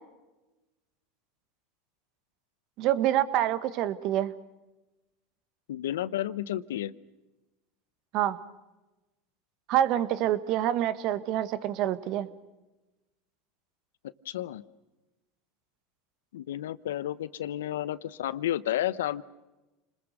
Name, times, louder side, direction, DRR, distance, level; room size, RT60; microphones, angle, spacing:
voice 1, 2.8-4.3 8.1-8.4 9.7-12.3, right 12 dB, 55° right, 13 dB, 1.5 m, -26 dB
voice 2, 5.7-6.9 14.2-14.6 16.3-19.2, left 12 dB, 85° left, 18 dB, 0.8 m, -31 dB
29.5 x 21.0 x 6.6 m, 1.1 s
hypercardioid pair, 100°, 0 cm